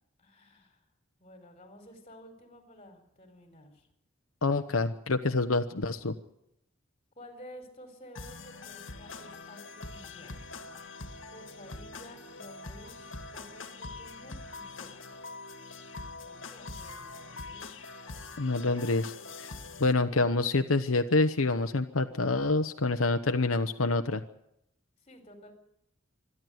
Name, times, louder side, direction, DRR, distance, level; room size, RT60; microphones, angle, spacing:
voice 1, 0.2-0.8 1.2-3.9 7.2-10.3 11.3-13.1 13.3-15.1 16.2-17.7 25.0-25.5, equal, 30° left, 5 dB, 4.4 m, -52 dB
voice 2, 4.4-6.1 18.4-19.5 19.8-24.2, left 3 dB, 90° left, 6 dB, 1.0 m, -27 dB
sound 1, 8.1-19.9, left 3 dB, 65° left, 2.1 m, -44 dB
26.0 x 11.0 x 9.4 m, 0.80 s
head